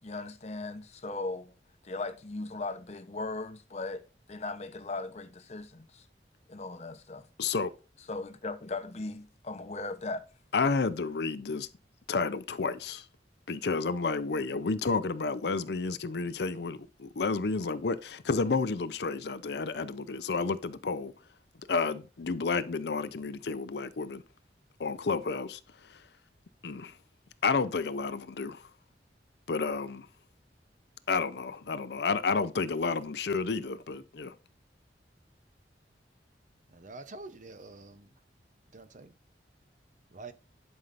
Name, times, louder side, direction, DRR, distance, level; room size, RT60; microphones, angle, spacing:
voice 1, 0.0-1.5 1.8-4.0 4.3-6.1 6.5-7.3 8.1-10.2, left 3 dB, 40° left, 0.8 m, -38 dB
voice 2, 7.4-7.7 10.5-11.7 12.1-13.1 13.5-21.1 21.7-24.2 24.8-26.0 26.6-27.0 27.4-28.7 29.5-30.1 31.1-34.3, left 4 dB, 65° left, 0.6 m, -31 dB
voice 3, 36.7-38.1 38.7-39.1 40.1-40.3, right 3 dB, 45° right, 0.7 m, -46 dB
11.0 x 5.4 x 2.6 m
head